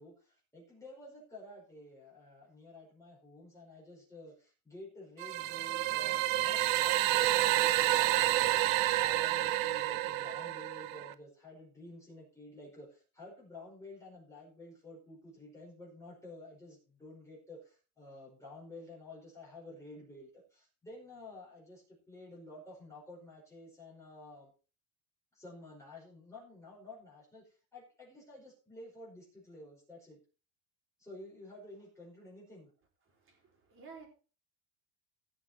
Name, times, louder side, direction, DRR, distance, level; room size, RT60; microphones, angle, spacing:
voice 1, 0.0-24.5 25.3-30.2 31.0-32.7, left 1 dB, 5° left, -5 dB, 5.1 m, -51 dB
sound 1, 5.2-11.1, right 15 dB, 45° right, 0.7 m, -29 dB
voice 2, 33.1-34.1, right 5 dB, 25° right, 1 dB, 3.9 m, -53 dB
16.5 x 6.3 x 4.4 m, 0.36 s
cardioid pair, 160°, 47 cm